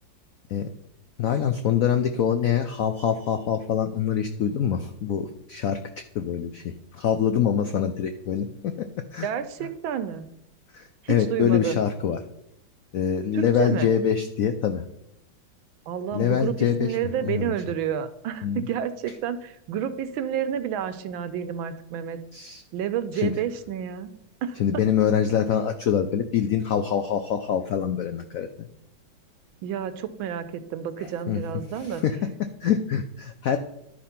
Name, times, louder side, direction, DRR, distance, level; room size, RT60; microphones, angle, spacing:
voice 1, 1.2-5.8 6.1-8.9 9.1-9.3 10.7-12.2 12.9-14.8 16.1-17.0 17.2-17.5 18.4-18.6 22.3-22.6 23.1-23.3 24.6-28.7 31.0-31.4 31.8-32.2 32.6-33.6, left 8 dB, 90° left, 8 dB, 0.7 m, -25 dB
voice 2, 9.2-10.3 11.0-11.8 13.3-13.9 15.9-22.2 22.7-24.1 24.4-24.8 29.6-32.0, right 9 dB, 90° right, 11 dB, 1.5 m, -30 dB
11.5 x 4.4 x 5.8 m, 0.81 s
omnidirectional pair, 2.1 m